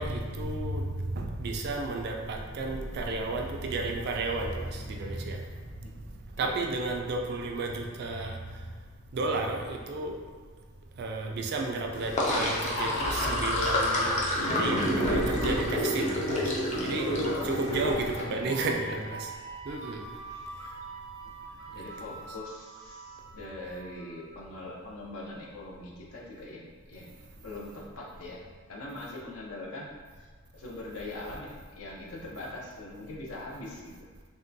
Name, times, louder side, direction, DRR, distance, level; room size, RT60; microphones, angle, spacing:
voice 1, 0.0-5.4 6.4-8.4 9.1-10.1 11.0-14.2 14.6-16.4 16.8-17.1 17.4-19.3 19.7-20.0, right 3 dB, 50° right, 2 dB, 0.3 m, -32 dB
Sink (filling or washing), 11.9-18.2, left 1 dB, 35° left, 0.4 m, -28 dB
sound 1, 15.0-24.7, right 3 dB, 75° right, 0.7 m, -45 dB
voice 2, 17.8-19.0 20.3-20.5 21.2-29.9 30.2-30.3 30.5-34.1, left 2 dB, 75° left, -3 dB, 0.6 m, -42 dB
3.5 x 2.2 x 2.6 m, 1.5 s
head